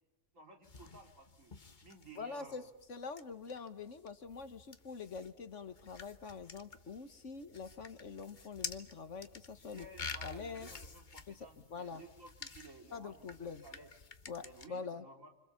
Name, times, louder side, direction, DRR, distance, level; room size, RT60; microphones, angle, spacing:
voice 1, 0.3-1.6 1.8-2.7 9.7-13.9 14.4-15.3, right 2 dB, 55° right, 3 dB, 4.0 m, -56 dB
sound 1, 0.6-14.7, left 4 dB, 35° left, 1.3 m, -50 dB
voice 2, 2.2-9.9 10.2-10.7 11.3-11.4 11.7-12.0 12.9-13.6 14.3-15.1, left 5 dB, 55° left, 11 dB, 1.6 m, -45 dB
28.0 x 26.0 x 7.2 m, 0.96 s
omnidirectional pair, 1.6 m